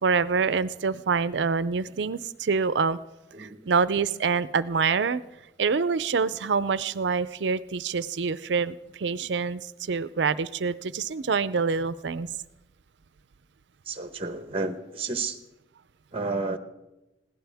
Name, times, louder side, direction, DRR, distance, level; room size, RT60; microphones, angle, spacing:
voice 1, 0.0-3.0 3.4-5.2 5.6-12.3, right 5 dB, 75° right, 16 dB, 0.5 m, -26 dB
voice 2, 13.9-15.4 16.1-16.6, right 3 dB, 30° right, 9 dB, 1.0 m, -31 dB
20.5 x 16.5 x 3.5 m, 0.99 s
head